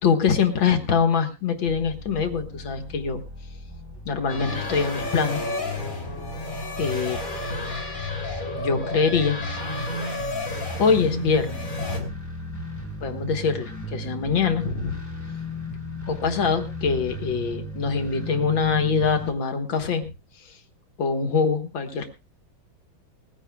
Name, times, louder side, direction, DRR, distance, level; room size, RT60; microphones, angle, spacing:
voice 1, 0.0-3.2 4.1-5.4 6.8-7.2 7.5-7.8 8.6-9.6 10.8-12.1 13.0-15.0 16.0-20.1 20.3-20.6 21.0-22.1, left 5 dB, 75° left, 5 dB, 2.2 m, -24 dB
sound 1, 1.7-19.3, left 1 dB, 10° left, 3.8 m, -37 dB
sound 2, 4.3-12.0, left 2 dB, 45° left, 3.7 m, -31 dB
20.0 x 15.5 x 2.3 m, 0.28 s
omnidirectional pair, 2.1 m